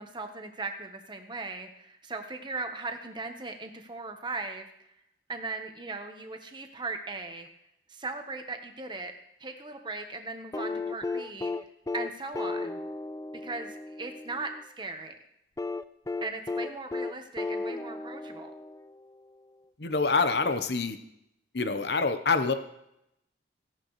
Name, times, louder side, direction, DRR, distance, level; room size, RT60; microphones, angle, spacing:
voice 1, 0.0-4.7 5.3-7.5 7.9-9.1 9.4-11.5 11.9-12.8 13.4-15.2 16.2-18.5, right 3 dB, 25° right, 5 dB, 1.1 m, -38 dB
sound 1, 10.5-14.6 15.6-19.2 20.6-20.7, left 3 dB, 15° left, 0.3 m, -35 dB
voice 2, 19.8-21.0 21.5-22.5, left 4 dB, 60° left, 9 dB, 0.9 m, -26 dB
16.5 x 11.0 x 3.2 m, 0.81 s
head